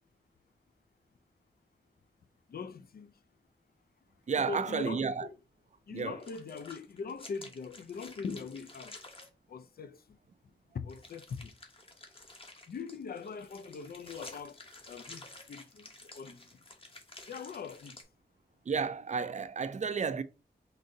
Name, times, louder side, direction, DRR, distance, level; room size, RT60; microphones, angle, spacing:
voice 1, 2.5-3.1 4.4-5.4 5.9-9.0 9.5-10.0 10.7-11.5 12.7-14.6 14.9-16.4 17.3-18.0, left 5 dB, 55° left, 0.4 m, -41 dB
voice 2, 4.3-5.3 5.9-6.2 18.7-20.2, right 5 dB, 40° right, 0.4 m, -32 dB
sound 1, 6.0-9.3 10.9-18.0, left 2 dB, 30° left, 0.9 m, -51 dB
3.9 x 2.6 x 3.8 m
wide cardioid pair, 80°, 18 cm